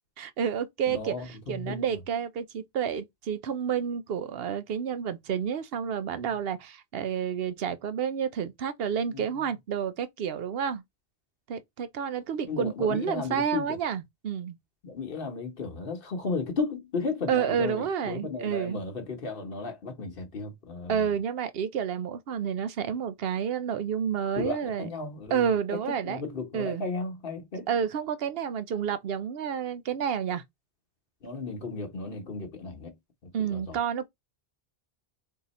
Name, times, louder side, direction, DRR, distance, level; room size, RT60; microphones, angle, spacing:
voice 1, 0.2-1.1 1.5-10.8 11.5-14.6 17.3-18.8 20.9-24.9 25.3-26.2 26.5-26.8 27.7-30.4 33.3-34.1, right 7 dB, 70° right, 0.8 m, -30 dB
voice 2, 0.9-2.0 9.1-9.5 12.5-13.8 14.8-21.1 24.4-25.5 26.0-27.7 31.2-32.9 33.5-33.8, left 4 dB, 60° left, 1.1 m, -34 dB
3.9 x 2.8 x 4.1 m
omnidirectional pair, 1.1 m